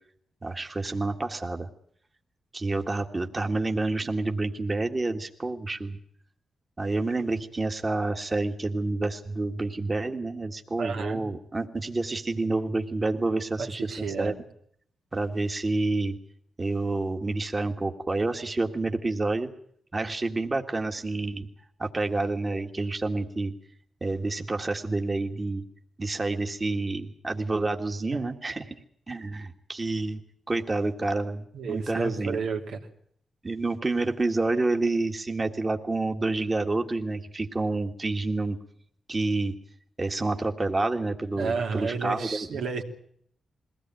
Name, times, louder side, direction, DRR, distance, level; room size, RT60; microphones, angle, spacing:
voice 1, 0.4-1.7 2.5-6.0 6.8-14.3 15.1-16.2 16.6-19.5 19.9-21.5 21.8-23.5 24.0-25.6 26.0-28.7 29.1-30.2 30.5-32.4 33.4-38.6 39.1-39.5 40.0-42.5, right 2 dB, 25° right, 4 dB, 1.7 m, -28 dB
voice 2, 10.8-11.2 13.6-14.4 28.1-28.3 31.5-32.8 41.4-42.8, right 5 dB, 90° right, 2 dB, 2.9 m, -32 dB
22.0 x 17.0 x 9.1 m, 0.66 s
cardioid pair, 105°, 0 cm